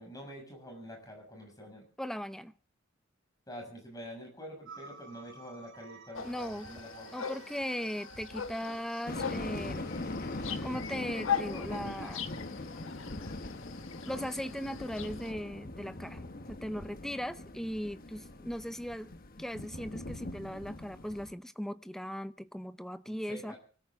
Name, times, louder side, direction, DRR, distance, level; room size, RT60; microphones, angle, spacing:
voice 1, 0.0-1.8 3.5-7.1 23.0-23.6, equal, 20° left, 2 dB, 6.3 m, -47 dB
voice 2, 2.0-2.5 6.2-6.7 7.1-9.9 10.6-12.3 14.1-19.1 19.4-23.5, equal, ahead, 13 dB, 0.6 m, -38 dB
sound 1, 4.6-10.7, right 3 dB, 65° right, 4.9 m, -53 dB
sound 2, 6.1-15.3, left 7 dB, 75° left, 1.2 m, -40 dB
sound 3, 9.1-21.3, left 2 dB, 45° left, 1.3 m, -41 dB
24.0 x 13.5 x 3.6 m, 0.40 s
head